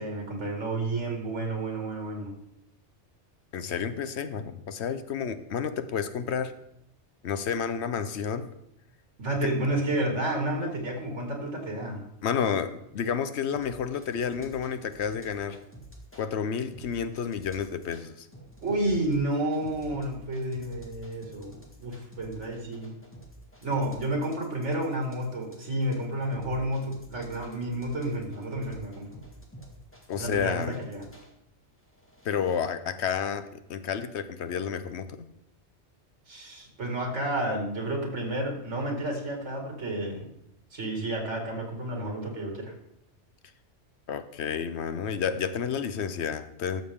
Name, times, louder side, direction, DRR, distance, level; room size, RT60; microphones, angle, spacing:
voice 1, 0.0-2.3 9.2-12.0 18.6-22.9 23.6-29.1 30.2-31.0 36.3-40.3 40.7-42.7, right 1 dB, 85° right, 1 dB, 2.5 m, -31 dB
voice 2, 3.5-6.5 7.2-8.4 12.2-15.6 16.1-18.3 30.1-30.8 32.2-33.4 33.7-35.3 44.1-46.8, left 7 dB, 70° left, 11 dB, 0.9 m, -30 dB
sound 1, 13.5-16.2 16.7-18.0 18.3-31.3 31.9-32.7, right 1 dB, 10° left, 1.6 m, -49 dB
13.0 x 7.0 x 3.6 m, 0.79 s
omnidirectional pair, 1.2 m